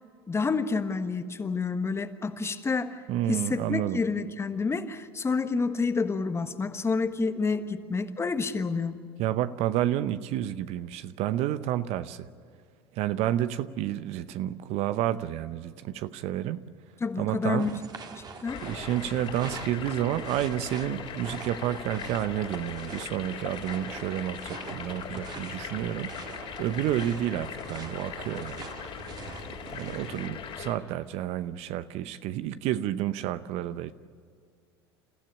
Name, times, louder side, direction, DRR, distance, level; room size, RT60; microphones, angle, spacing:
voice 1, 0.3-3.0 3.3-9.0 17.0-17.7 18.1-18.6, left 4 dB, 20° left, 9 dB, 1.4 m, -29 dB
voice 2, 3.1-4.0 9.2-12.3 12.9-16.6 17.2-17.7 18.6-28.7 29.0-29.1 29.7-33.9, right 12 dB, 50° right, 13 dB, 0.8 m, -30 dB
sound 1, 17.6-30.3, right 5 dB, 30° right, 1.9 m, -45 dB
sound 2, 18.4-30.8, left 7 dB, 45° left, 3.7 m, -40 dB
29.5 x 15.0 x 8.7 m, 2.1 s
hypercardioid pair, 80°, 13 cm